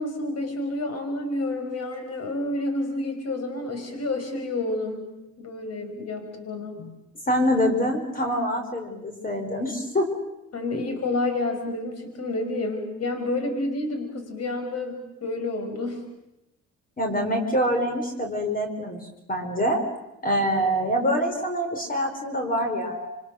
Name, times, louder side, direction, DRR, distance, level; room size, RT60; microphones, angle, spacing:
voice 1, 0.0-5.1 5.4-7.0 10.5-16.0, left 2 dB, 55° left, 6 dB, 5.8 m, -29 dB
voice 2, 7.3-10.1 17.0-19.8 20.2-23.1, equal, 30° left, 4 dB, 4.7 m, -25 dB
27.5 x 25.0 x 6.6 m, 0.88 s
cardioid pair, 90°, 30 cm